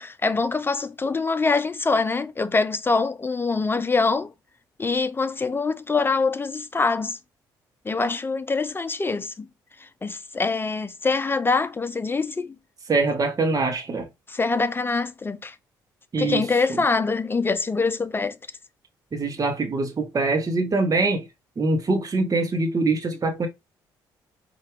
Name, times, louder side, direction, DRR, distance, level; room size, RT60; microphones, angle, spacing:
voice 1, 0.0-4.3 4.8-7.2 7.8-9.5 9.8-12.5 14.3-15.5 16.2-18.4, left 4 dB, 20° left, 0.5 m, -24 dB
voice 2, 12.9-14.1 16.1-16.4 16.7-16.8 19.1-21.3 21.6-23.5, right 3 dB, 35° right, 1.0 m, -23 dB
4.3 x 2.4 x 3.2 m
hypercardioid pair, 50°, 11 cm